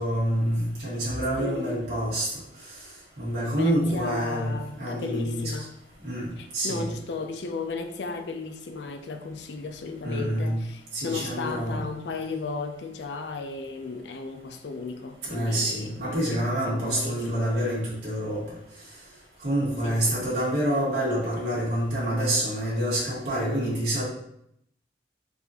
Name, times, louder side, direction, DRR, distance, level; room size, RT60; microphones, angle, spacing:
voice 1, 0.0-2.3 3.2-5.5 6.0-6.9 10.0-10.6 10.9-11.8 15.2-18.4 19.4-24.0, equal, 75° right, -8 dB, 1.6 m, -27 dB
voice 2, 1.4-1.9 3.5-5.7 6.4-16.4 16.8-17.4 19.8-20.2, left 4 dB, 80° left, 6 dB, 0.5 m, -35 dB
4.1 x 4.0 x 2.9 m, 0.74 s
head